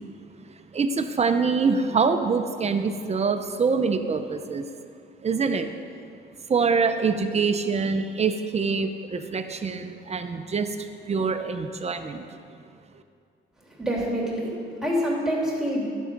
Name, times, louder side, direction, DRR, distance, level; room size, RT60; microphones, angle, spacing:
voice 1, 0.7-4.6 5.2-5.7 6.5-10.7 11.1-12.2, right 5 dB, 35° right, 7 dB, 0.8 m, -25 dB
voice 2, 13.7-15.9, equal, 5° right, -5 dB, 2.9 m, -27 dB
11.5 x 7.3 x 5.3 m, 2.3 s
cardioid pair, 90°, 20 cm